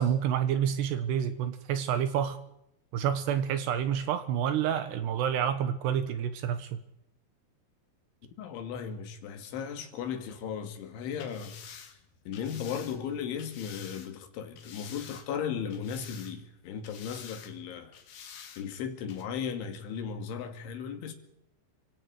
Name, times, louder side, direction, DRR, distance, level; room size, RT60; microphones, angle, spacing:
voice 1, 0.0-2.4 2.9-6.8, right 9 dB, 70° right, 3.1 m, -28 dB
voice 2, 8.4-11.6 12.3-17.9 18.6-21.1, left 7 dB, 80° left, 4.6 m, -36 dB
sound 1, 11.1-14.1 14.6-15.4 15.7-16.5 16.8-17.5 17.9-18.6 19.1-19.2, left 8 dB, 60° left, 3.9 m, -48 dB
28.5 x 25.5 x 4.9 m
omnidirectional pair, 5.4 m